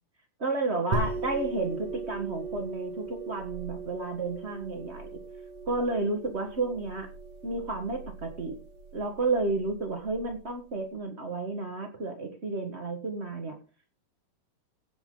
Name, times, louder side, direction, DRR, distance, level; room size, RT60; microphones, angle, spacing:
voice 1, 0.4-5.2 5.7-7.1 7.4-8.6 8.9-13.6, right 3 dB, 85° right, 4 dB, 0.5 m, -31 dB
sound 1, 0.9-10.3, right 3 dB, 45° right, 2.6 m, -38 dB
16.5 x 7.3 x 3.9 m, 0.33 s
omnidirectional pair, 4.2 m